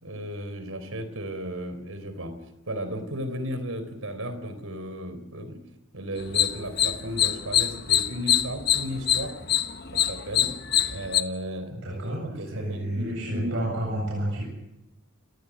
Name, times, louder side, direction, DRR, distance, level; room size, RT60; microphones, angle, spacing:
voice 1, 0.0-2.3 2.7-5.6 5.9-9.5 9.9-10.5 10.9-13.6, equal, 75° right, 10 dB, 4.1 m, -34 dB
sound 1, 6.2-11.2, left 10 dB, 45° left, 1.1 m, -24 dB
voice 2, 11.7-14.4, right 1 dB, 55° right, -2 dB, 7.9 m, -30 dB
29.5 x 19.0 x 6.3 m, 0.89 s
head